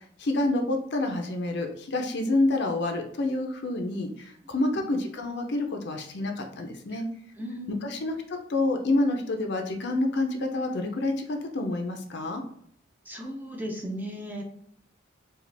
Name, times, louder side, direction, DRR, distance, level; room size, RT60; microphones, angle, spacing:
voice 1, 0.2-7.0 7.8-12.4, left 2 dB, 60° left, 4 dB, 0.6 m, -28 dB
voice 2, 7.4-7.9 13.1-14.4, equal, 10° right, 0 dB, 0.6 m, -36 dB
4.9 x 2.4 x 3.3 m, 0.66 s
head